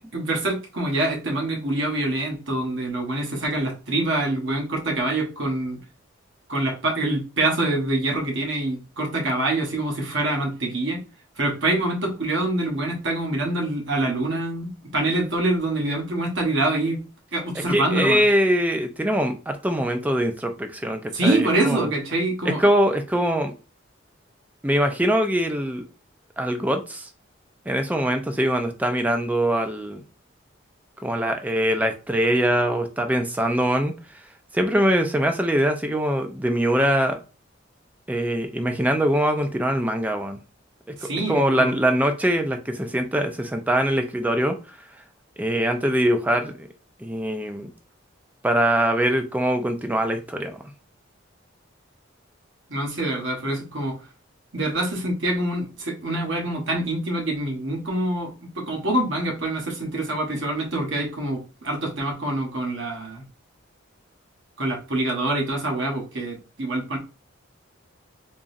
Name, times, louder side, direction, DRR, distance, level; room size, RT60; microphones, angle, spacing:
voice 1, 0.1-5.8 6.5-11.0 11.4-17.0 17.3-18.2 21.1-22.6 41.0-41.7 52.7-54.0 54.5-63.2 64.6-67.0, right 2 dB, 65° right, 0 dB, 1.2 m, -25 dB
voice 2, 17.7-21.9 22.5-23.5 24.6-25.9 26.4-27.1 27.7-30.0 31.0-33.9 34.5-37.2 38.1-40.4 41.3-44.5 45.4-46.7 47.0-47.7 48.4-50.6, equal, 10° right, 6 dB, 0.4 m, -23 dB
3.7 x 3.0 x 2.6 m, 0.32 s
head